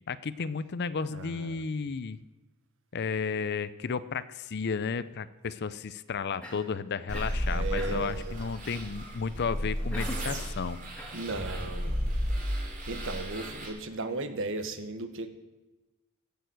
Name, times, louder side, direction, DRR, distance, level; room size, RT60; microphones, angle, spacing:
voice 1, 0.1-2.2 2.9-10.8, left 5 dB, 50° left, 15 dB, 0.5 m, -33 dB
voice 2, 1.1-1.6 7.5-8.4 11.1-12.2 12.9-15.3, right 3 dB, 60° right, 8 dB, 1.3 m, -36 dB
Cough, 6.4-6.7 7.1-7.4 7.8-8.1 9.9-10.3 10.9-11.7, equal, 5° left, 2.2 m, -41 dB
sound 1, 7.1-13.7, equal, 40° right, 3.2 m, -33 dB
16.5 x 7.0 x 7.9 m, 1.1 s
head